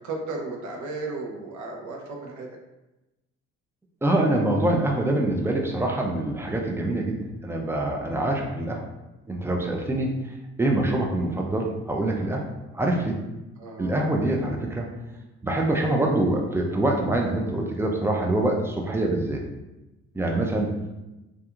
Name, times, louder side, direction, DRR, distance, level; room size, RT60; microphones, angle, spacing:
voice 1, 0.0-2.5 13.6-14.0 20.2-20.4, right 3 dB, 70° right, 0 dB, 0.6 m, -35 dB
voice 2, 4.0-7.2 7.4-8.9 9.3-10.1 10.6-12.5 12.7-13.2 13.8-14.9 15.4-19.4 20.1-20.7, right 1 dB, 10° right, 0 dB, 0.4 m, -25 dB
2.7 x 2.3 x 2.3 m, 1.0 s
cardioid pair, 90°, 30 cm